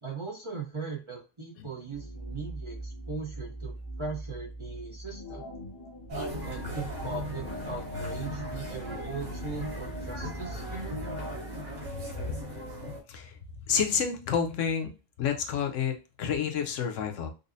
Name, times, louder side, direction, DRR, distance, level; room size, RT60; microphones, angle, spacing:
voice 1, 0.0-5.4 6.4-11.0, right 4 dB, 30° right, -1 dB, 0.7 m, -39 dB
sound 1, 1.9-11.9, right 1 dB, 30° left, 0.5 m, -42 dB
sound 2, 6.1-13.0, left 1 dB, 75° right, 1.6 m, -37 dB
voice 2, 13.7-14.9 15.2-17.3, left 7 dB, 80° left, 5 dB, 1.0 m, -29 dB
5.2 x 2.0 x 2.6 m, 0.30 s
omnidirectional pair, 1.3 m